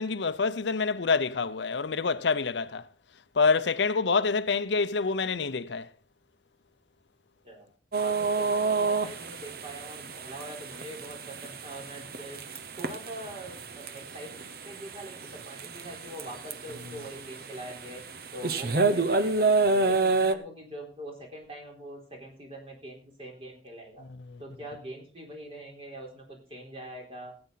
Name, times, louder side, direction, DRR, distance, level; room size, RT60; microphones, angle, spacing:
voice 1, 0.0-2.8 3.3-5.9 24.3-24.4, left 4 dB, 75° left, 0.7 m, -27 dB
sound 1, 7.9-20.3, right 3 dB, 55° right, 1.0 m, -29 dB
voice 2, 8.0-12.4 12.8-14.3 14.6-18.0 18.3-24.0 24.4-27.3, right 1 dB, 30° right, 4.0 m, -43 dB
18.0 x 8.7 x 4.0 m
head